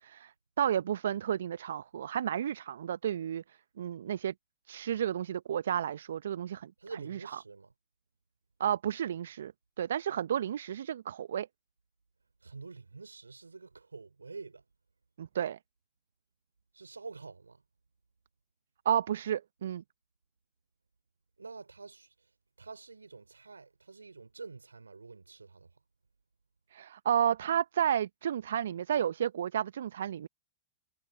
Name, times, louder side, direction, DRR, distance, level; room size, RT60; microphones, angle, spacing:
voice 1, 0.0-0.3 0.6-3.4 3.8-4.3 4.7-6.7 7.1-7.2 8.6-9.5 9.8-11.5 15.2-15.6 18.8-19.8 26.7-30.3, right 9 dB, 65° right, 0.7 m, -31 dB
voice 2, 6.8-7.7 12.4-14.6 16.7-17.6 21.4-22.1 22.6-25.7, right 4 dB, 85° right, 4.3 m, -47 dB
figure-of-eight pair, 100°, 0 cm